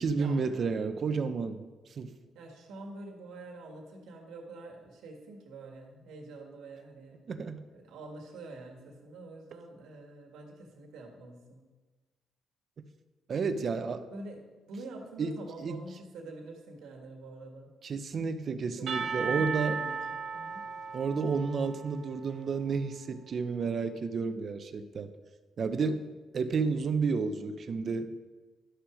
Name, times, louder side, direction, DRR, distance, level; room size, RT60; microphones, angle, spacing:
voice 1, 0.0-1.6 2.0-2.1 7.3-7.6 13.3-14.1 15.2-15.3 15.6-15.8 17.8-19.8 20.9-25.1 25.6-26.0 26.3-28.1, right 5 dB, 50° right, 10 dB, 0.7 m, -31 dB
voice 2, 2.3-7.2 7.7-11.6 14.1-14.4 14.7-17.7 18.6-20.6 25.8-26.1, right 2 dB, 85° right, 2 dB, 1.7 m, -46 dB
Percussion / Church bell, 18.9-22.8, right 5 dB, 65° right, 1.1 m, -36 dB
11.0 x 6.1 x 5.0 m, 1.3 s
cardioid pair, 90°, 0 cm